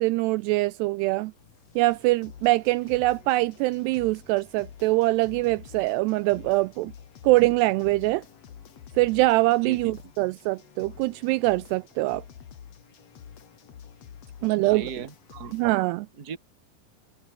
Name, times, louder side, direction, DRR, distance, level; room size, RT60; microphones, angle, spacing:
voice 1, 0.0-1.3 1.8-6.9 7.2-8.2 9.0-12.2 14.4-14.9 15.5-16.1, right 20 dB, 90° right, 2.4 m, -23 dB
sound 1, 1.4-15.7, left 8 dB, 45° left, 2.3 m, -48 dB
voice 2, 9.6-9.9 14.6-15.5 16.2-16.4, right 6 dB, 30° right, 1.9 m, -37 dB
omnidirectional pair, 5.4 m